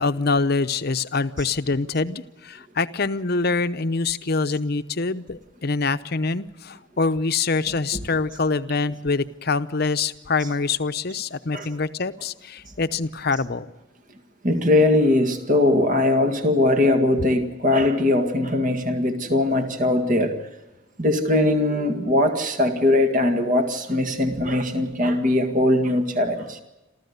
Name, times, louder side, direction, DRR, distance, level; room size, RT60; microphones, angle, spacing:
voice 1, 0.0-13.7, left 4 dB, 50° left, 12 dB, 0.8 m, -25 dB
voice 2, 14.4-20.4 21.0-26.6, left 1 dB, 40° right, 6 dB, 1.9 m, -20 dB
28.0 x 14.5 x 8.1 m, 1.0 s
head